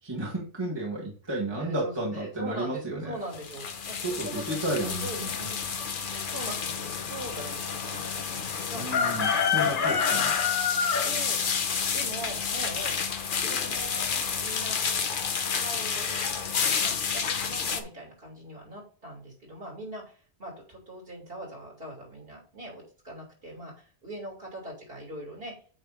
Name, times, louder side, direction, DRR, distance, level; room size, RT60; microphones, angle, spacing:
voice 1, 0.0-3.2 4.0-5.3 8.7-10.3, right 1 dB, 20° right, -3 dB, 1.7 m, -32 dB
voice 2, 1.5-10.2 11.0-11.4 11.9-13.0 13.4-14.8 15.6-25.5, right 1 dB, 55° right, -2 dB, 3.3 m, -41 dB
sound 1, 3.3-17.8, left 6 dB, 50° left, 0.9 m, -29 dB
8.8 x 3.3 x 4.9 m, 0.42 s
omnidirectional pair, 1.2 m